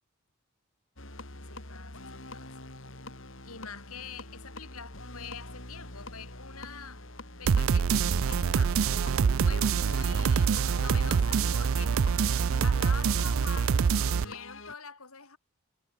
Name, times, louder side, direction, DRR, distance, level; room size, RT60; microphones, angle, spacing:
sound 1, 1.0-14.7, left 2 dB, 60° left, 6.3 m, -44 dB
voice 1, 1.5-2.5 3.4-7.1 7.4-7.9 8.3-8.9 9.4-12.0 12.6-13.8 14.1-15.4, left 6 dB, 80° left, 6.9 m, -45 dB
sound 2, 7.5-14.2, right 6 dB, 65° right, 0.4 m, -25 dB
head